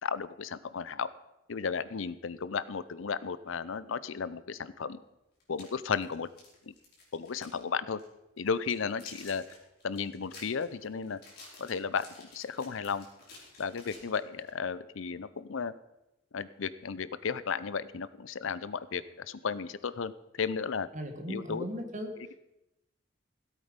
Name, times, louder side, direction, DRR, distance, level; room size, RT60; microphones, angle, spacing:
voice 1, 0.0-1.1 1.5-5.0 5.5-6.3 6.7-6.8 7.1-8.0 8.4-9.4 9.8-11.2 11.6-13.1 13.6-15.7 16.3-20.1 20.4-20.9 21.3-21.6 22.2-22.3, left 6 dB, 70° left, 16 dB, 0.6 m, -34 dB
sound 1, 5.4-7.6 7.9-8.1 8.5-14.5, left 3 dB, 45° left, 4.7 m, -52 dB
voice 2, 20.9-22.1, equal, 35° right, 5 dB, 1.7 m, -37 dB
16.5 x 8.4 x 5.2 m, 0.90 s
head